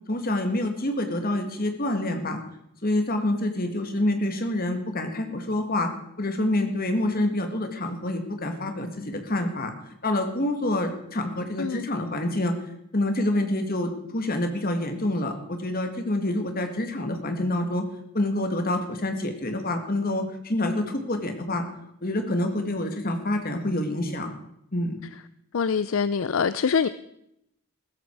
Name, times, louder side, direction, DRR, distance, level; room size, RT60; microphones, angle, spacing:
voice 1, 0.1-2.4 2.8-5.9 6.2-9.7 10.0-12.5 12.9-17.8 18.1-21.6 22.0-24.3 24.7-25.0, left 1 dB, 40° left, 1.9 m, -27 dB
voice 2, 25.5-26.9, left 6 dB, 60° left, 0.4 m, -24 dB
15.5 x 13.5 x 4.7 m
head